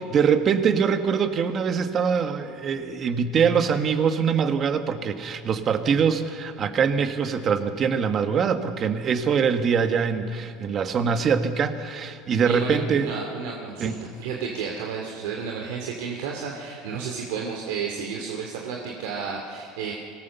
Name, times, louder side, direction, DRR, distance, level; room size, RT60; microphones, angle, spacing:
voice 1, 0.0-13.1 13.8-14.0, right 6 dB, 30° right, 8 dB, 1.4 m, -23 dB
voice 2, 12.4-19.9, right 6 dB, 80° right, 0 dB, 2.5 m, -32 dB
24.0 x 18.0 x 7.0 m, 2.3 s
supercardioid pair, 145°, 0 cm